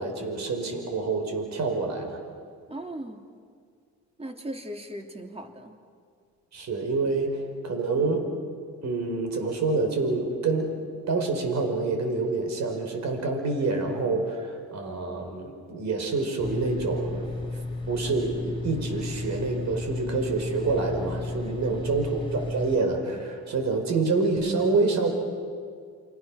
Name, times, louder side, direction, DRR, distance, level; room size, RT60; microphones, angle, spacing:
voice 1, 0.0-2.2 6.5-8.3 8.8-10.7 11.1-17.3 17.9-25.1, right 3 dB, 65° right, 5 dB, 5.2 m, -27 dB
voice 2, 2.7-3.2 4.2-5.8 21.4-21.8, right 1 dB, 20° right, 4 dB, 2.9 m, -38 dB
sound 1, 16.4-22.8, left 2 dB, 15° left, 4.4 m, -33 dB
29.5 x 25.0 x 6.5 m, 2.1 s
cardioid pair, 90°, 30 cm